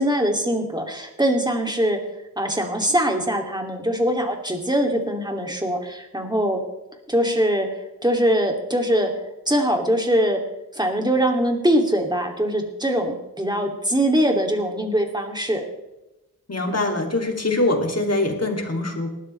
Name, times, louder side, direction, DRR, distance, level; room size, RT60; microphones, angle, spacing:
voice 1, 0.0-2.0 2.4-6.6 7.1-7.7 8.0-9.1 9.5-10.4 10.7-15.6, equal, 10° right, 3 dB, 2.6 m, -22 dB
voice 2, 16.5-19.1, left 2 dB, 45° left, 2 dB, 2.8 m, -23 dB
19.0 x 12.5 x 3.3 m, 0.97 s
wide cardioid pair, 55°, 35 cm